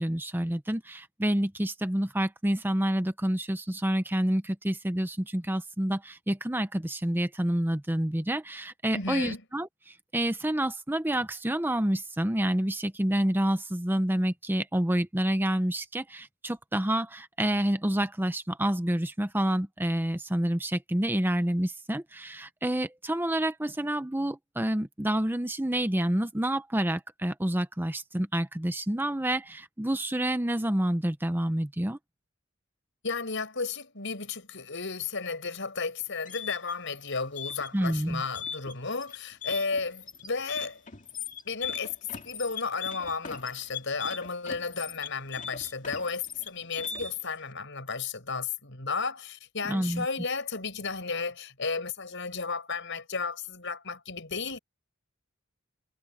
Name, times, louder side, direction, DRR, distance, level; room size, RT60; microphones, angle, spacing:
voice 1, 0.0-32.0 37.7-38.2 49.6-50.1, right 1 dB, 10° right, 0.8 m, -28 dB
voice 2, 8.9-9.4 33.0-40.8 41.4-41.9 42.2-54.6, left 4 dB, 65° left, 6.7 m, -33 dB
sound 1, 36.0-47.3, left 7 dB, 40° left, 2.1 m, -39 dB
head